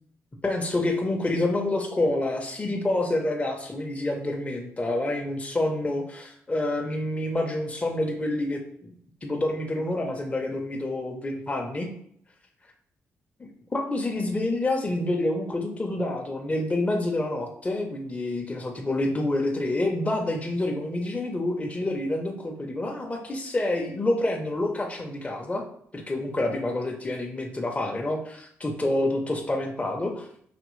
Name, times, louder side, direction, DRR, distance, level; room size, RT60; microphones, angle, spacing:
voice 1, 0.4-8.9 9.2-11.9 13.7-25.6 25.9-30.3, left 2 dB, 25° left, 2 dB, 0.8 m, -28 dB
5.1 x 2.9 x 3.2 m, 0.66 s
cardioid pair, 70°, 5 cm